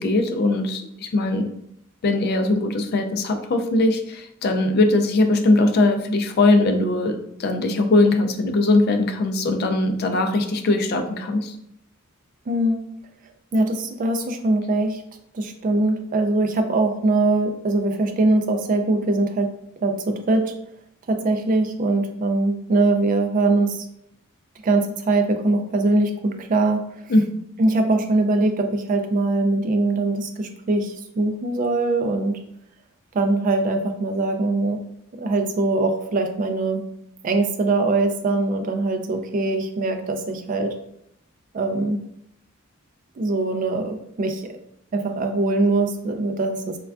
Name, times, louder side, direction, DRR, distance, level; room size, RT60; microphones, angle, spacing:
voice 1, 0.0-1.5 2.0-11.5 27.1-27.3, left 2 dB, 50° left, 6 dB, 0.3 m, -20 dB
voice 2, 12.5-12.8 13.5-15.0 15.3-19.5 19.8-20.5 21.1-23.9 24.6-26.8 27.6-32.4 33.1-34.8 35.1-36.8 37.2-40.7 41.5-42.0 43.2-44.4 44.9-46.8, right 2 dB, 40° right, 5 dB, 0.3 m, -22 dB
3.3 x 2.2 x 2.3 m, 0.75 s
head